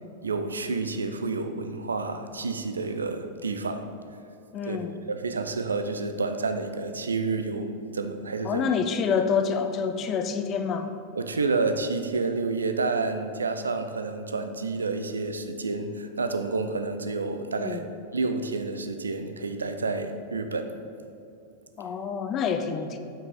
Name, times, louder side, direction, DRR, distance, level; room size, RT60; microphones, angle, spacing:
voice 1, 0.2-3.9 4.7-4.8 5.1-8.7 11.1-17.8 18.1-20.7, right 3 dB, 75° right, 8 dB, 0.5 m, -29 dB
voice 2, 4.5-5.0 8.4-10.9 17.6-17.8 21.8-23.0, left 6 dB, 30° left, 8 dB, 0.6 m, -27 dB
8.8 x 7.5 x 3.8 m, 2.8 s
figure-of-eight pair, 90°, 0 cm